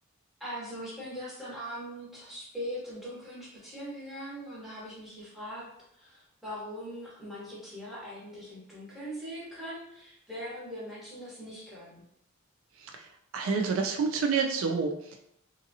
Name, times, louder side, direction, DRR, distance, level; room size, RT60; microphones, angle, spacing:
voice 1, 0.4-5.7 5.9-12.0, equal, ahead, -7 dB, 0.9 m, -41 dB
voice 2, 12.8-13.1 13.3-15.2, right 5 dB, 65° right, 3 dB, 0.3 m, -29 dB
2.7 x 2.5 x 2.6 m, 0.75 s
head